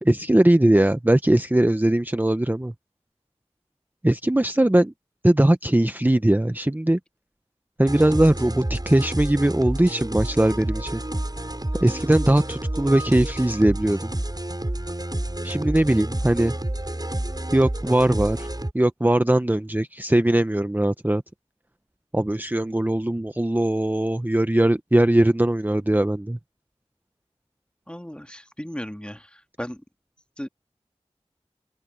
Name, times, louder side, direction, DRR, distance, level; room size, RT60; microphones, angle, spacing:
voice 1, 0.0-2.7 4.0-4.9 5.2-7.0 7.8-11.0 11.8-14.1 15.4-16.5 17.5-18.5 18.7-21.2 22.1-26.4, right 1 dB, 15° right, 0.7 m, -20 dB
sound 1, 7.8-18.7, right 1 dB, 35° right, 7.7 m, -29 dB
voice 2, 27.9-29.8 30.4-30.5, equal, 10° left, 1.8 m, -36 dB
open air
wide cardioid pair, 40°, 11 cm